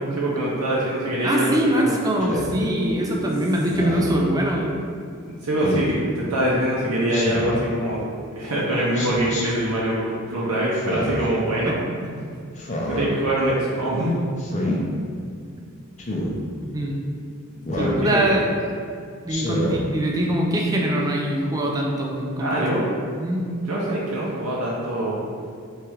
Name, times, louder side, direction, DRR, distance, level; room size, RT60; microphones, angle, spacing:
voice 1, 0.1-1.9 3.0-3.2 5.4-8.1 8.4-11.8 12.9-14.1 17.5-18.3 22.4-22.8 23.4-25.2, right 1 dB, 85° right, -6 dB, 0.7 m, -24 dB
voice 2, 1.2-4.7 11.6-11.8 16.6-17.0 17.8-18.4 19.2-22.7 23.2-23.5, right 1 dB, 15° right, -1 dB, 0.4 m, -23 dB
Speech synthesizer, 2.2-2.5 3.7-4.2 5.6-5.9 7.1-7.6 8.9-9.4 10.7-11.3 12.6-13.1 14.4-14.8 16.0-16.3 17.6-18.0 19.3-19.8, left 1 dB, 30° left, 0.6 m, -27 dB
3.5 x 3.2 x 4.5 m, 2.3 s
head